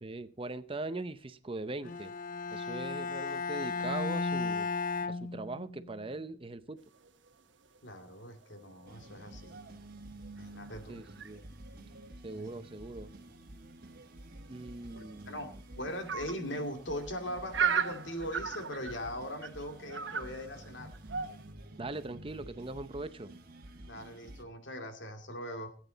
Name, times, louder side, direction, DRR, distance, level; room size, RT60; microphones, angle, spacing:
voice 1, 0.0-2.1 2.5-4.7 5.1-6.8 10.9-11.4 12.2-13.1 14.5-15.4 21.8-23.3, right 2 dB, 30° right, 12 dB, 0.7 m, -40 dB
Bowed string instrument, 1.8-6.0, left 4 dB, 45° left, 0.5 m, -35 dB
sound 1, 6.8-9.8 10.1-12.6 13.1-13.4 13.6-13.7 13.9-21.5, right 7 dB, 80° right, 1.2 m, -38 dB
voice 2, 7.8-9.6 10.4-11.0 12.3-12.5 14.9-20.9 23.8-25.7, equal, 75° left, 5 dB, 2.5 m, -40 dB
sound 2, 8.9-24.4, right 1 dB, 50° right, 1.6 m, -50 dB
17.5 x 9.2 x 4.0 m, 0.42 s
head